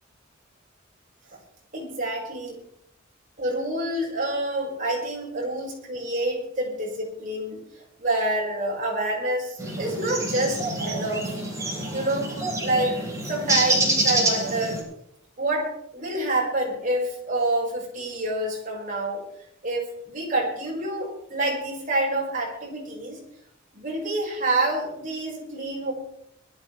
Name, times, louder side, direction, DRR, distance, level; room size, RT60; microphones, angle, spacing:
voice 1, 1.7-2.6 3.4-7.6 8.0-11.3 11.9-12.4 12.6-13.0 13.3-14.8 15.4-19.2 19.6-23.2 23.7-25.9, right 1 dB, 45° right, -3 dB, 5.8 m, -27 dB
sound 1, 9.6-14.8, right 2 dB, 15° right, 4.9 m, -27 dB
21.0 x 13.5 x 3.4 m, 0.74 s
head